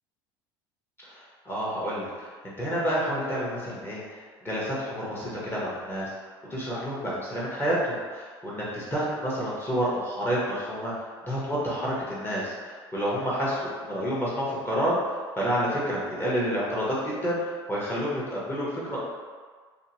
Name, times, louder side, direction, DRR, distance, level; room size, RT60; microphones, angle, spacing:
voice 1, 1.0-4.2 4.4-6.1 6.5-10.9 11.2-15.0 15.4-19.0, equal, 15° left, -7 dB, 1.0 m, -29 dB
2.7 x 2.2 x 2.8 m, 1.6 s
hypercardioid pair, 70°, 13 cm